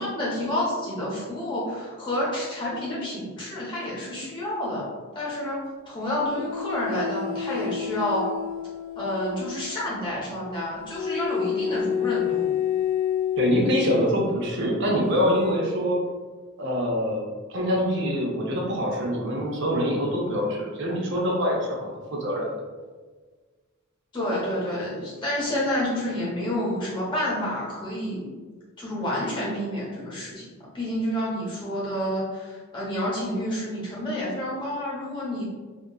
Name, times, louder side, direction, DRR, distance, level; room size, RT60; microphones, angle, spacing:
voice 1, 0.0-4.8 5.1-5.6 5.9-8.2 9.0-12.5 24.1-28.2 28.8-35.4, left 1 dB, 25° left, -6 dB, 0.9 m, -29 dB
sound 1, 6.3-9.8 10.9-14.1 15.2-15.5, left 8 dB, 85° left, 0.6 m, -29 dB
voice 2, 13.4-16.0 16.6-22.5, equal, 60° right, -1 dB, 0.6 m, -25 dB
2.8 x 2.4 x 2.3 m, 1.4 s
head